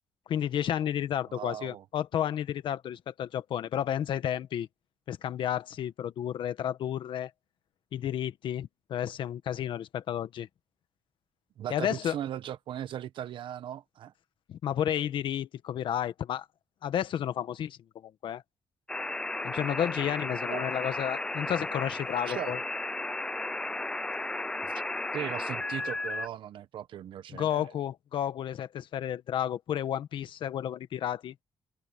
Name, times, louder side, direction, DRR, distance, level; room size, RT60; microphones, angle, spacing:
voice 1, 0.3-4.7 5.1-7.3 7.9-10.5 11.7-12.2 14.5-16.4 16.8-18.4 19.4-22.6 27.3-31.3, left 10 dB, 65° left, 1.4 m, -32 dB
voice 2, 1.3-1.8 11.6-14.1 20.5-20.7 22.3-22.5 24.6-24.7 25.1-27.7, right 10 dB, 70° right, 1.1 m, -38 dB
sound 1, 18.9-26.3, left 2 dB, 10° left, 0.5 m, -34 dB
wide cardioid pair, 175°, 9 cm